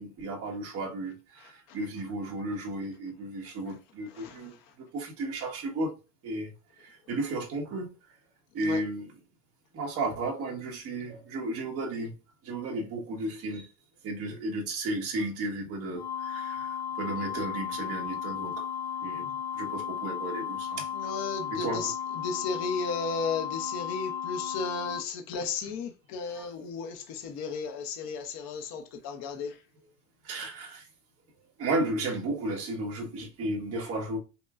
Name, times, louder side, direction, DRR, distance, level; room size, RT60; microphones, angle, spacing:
voice 1, 0.0-5.9 6.2-6.5 6.8-7.9 8.5-9.2 9.7-12.2 12.4-13.7 14.0-18.7 19.0-20.9 21.5-21.9 24.0-24.1 26.3-26.5 30.2-30.9 31.6-34.2, right 2 dB, 30° right, 1.3 m, -34 dB
sound 1, 15.9-25.0, left 8 dB, 85° left, 1.3 m, -35 dB
voice 2, 21.0-21.7 22.2-26.9 27.2-29.5, left 5 dB, 35° left, 0.7 m, -34 dB
5.4 x 2.2 x 2.4 m
supercardioid pair, 160°, 47 cm